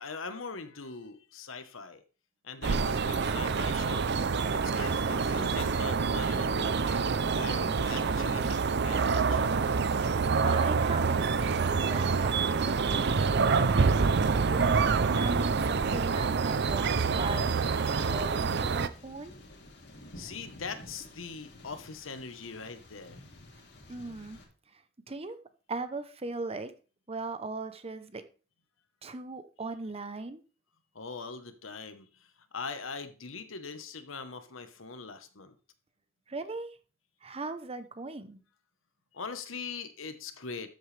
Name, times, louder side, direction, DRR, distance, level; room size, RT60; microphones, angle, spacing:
voice 1, 0.0-2.0 2.4-4.1 4.5-9.5 20.2-23.2 30.9-35.5 39.1-40.7, left 4 dB, 80° left, 9 dB, 1.2 m, -42 dB
sound 1, 2.6-18.9, right 5 dB, 55° right, 0.6 m, -27 dB
Thunder, 8.4-24.4, left 1 dB, 60° left, 2.5 m, -51 dB
voice 2, 10.4-14.1 14.5-17.5 17.8-19.3 23.9-24.4 25.1-25.4 25.7-26.7 27.1-28.2 29.0-30.4 36.3-36.7 37.2-38.4, right 3 dB, 30° right, 11 dB, 0.9 m, -38 dB
13.0 x 7.9 x 3.4 m, 0.36 s
head